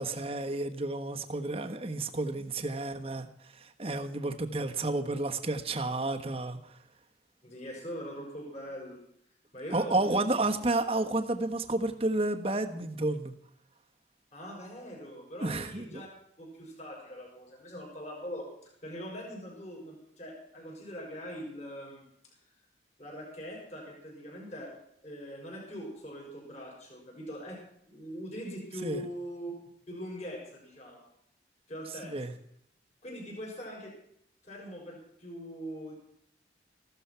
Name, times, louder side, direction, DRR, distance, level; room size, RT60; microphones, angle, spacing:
voice 1, 0.0-3.3 3.6-6.6 9.7-13.3 15.4-16.0 28.8-29.0 32.1-32.3, right 2 dB, 35° right, 5 dB, 1.2 m, -31 dB
voice 2, 7.4-9.0 9.5-10.2 14.3-16.1 16.4-22.1 23.0-24.7 25.0-29.5 29.9-31.1 31.7-32.1 33.0-33.9 34.4-35.9, equal, 40° left, -1 dB, 5.8 m, -42 dB
15.5 x 13.0 x 5.7 m, 0.72 s
head